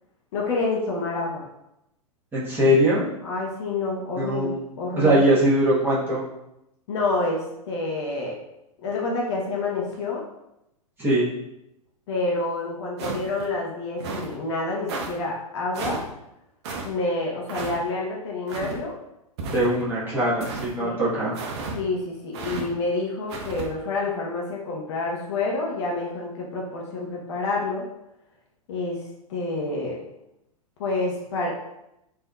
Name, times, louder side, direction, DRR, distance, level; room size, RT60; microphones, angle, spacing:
voice 1, 0.3-1.5 3.2-5.3 6.9-8.4 8.8-10.2 12.1-16.0 16.8-19.0 20.8-21.0 21.7-27.9 28.7-30.0 30.8-31.5, left 3 dB, 50° left, -2 dB, 0.7 m, -28 dB
voice 2, 2.3-3.1 4.2-4.6 5.0-6.2 11.0-11.3 19.5-21.3, equal, 10° right, -8 dB, 1.0 m, -21 dB
sound 1, 13.0-13.5 14.0-14.3 14.9-15.1 15.7-16.1 16.6-16.9 17.5-17.8 18.5-18.8 19.4-19.9 20.4-20.7 21.3-21.8 22.3-22.6 23.3-23.7, right 3 dB, 45° right, 0.6 m, -32 dB
3.4 x 2.6 x 2.3 m, 0.85 s
figure-of-eight pair, 105°, 19 cm